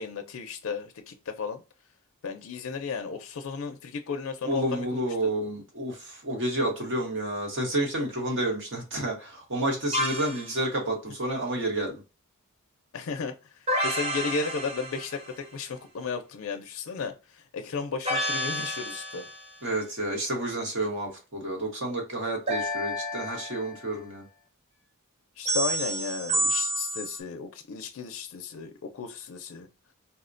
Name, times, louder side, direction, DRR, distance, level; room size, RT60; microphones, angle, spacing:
voice 1, 0.0-1.6 2.2-5.0 12.9-13.3 13.8-19.3 25.4-29.7, left 5 dB, 60° left, 0.4 m, -34 dB
voice 2, 4.4-12.0 19.6-24.2, right 1 dB, 55° right, 1.0 m, -30 dB
sound 1, 9.9-10.5 13.7-15.4 18.1-19.5 22.5-23.9 25.5-27.2, equal, 25° right, 0.7 m, -30 dB
4.2 x 2.1 x 2.5 m
head